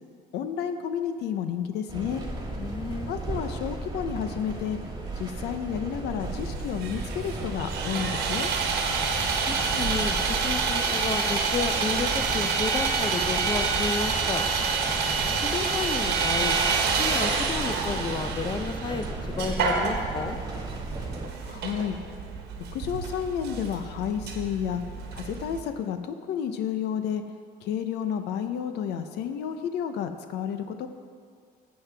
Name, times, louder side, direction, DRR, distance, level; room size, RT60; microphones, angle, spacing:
voice 1, 0.3-2.2 3.1-4.8 5.2-8.5 21.4-22.0 22.7-24.8 25.1-27.2 27.6-30.9, left 8 dB, 80° left, 8 dB, 0.7 m, -31 dB
sound 1, 1.9-21.3, right 2 dB, 25° right, 1.6 m, -35 dB
voice 2, 2.6-3.2 9.5-14.5 15.4-16.6 17.0-19.1 19.4-20.4, left 4 dB, 25° left, 8 dB, 0.6 m, -32 dB
Sawing, 6.2-25.6, right 5 dB, 75° right, 1.3 m, -28 dB
13.5 x 7.8 x 3.4 m, 2.1 s
cardioid pair, 110°, 17 cm